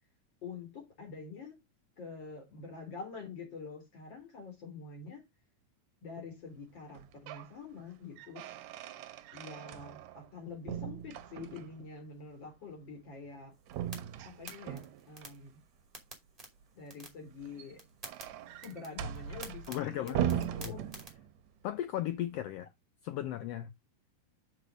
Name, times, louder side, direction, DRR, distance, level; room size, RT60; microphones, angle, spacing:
voice 1, 0.4-1.6 2.0-5.3 6.0-8.5 9.3-13.5 14.2-15.6 16.8-17.8 18.6-20.8, left 4 dB, 40° left, 4.0 m, -46 dB
sound 1, 6.9-7.5 7.9-10.4 10.7-11.9 13.7-15.3 17.3-21.5, right 10 dB, 75° right, 1.8 m, -39 dB
sound 2, 13.5-21.1, right 2 dB, 15° right, 1.9 m, -52 dB
voice 2, 19.7-20.4 20.6-20.8 21.6-22.7 23.0-23.7, left 12 dB, 90° left, 1.4 m, -36 dB
6.6 x 4.6 x 5.0 m
omnidirectional pair, 3.4 m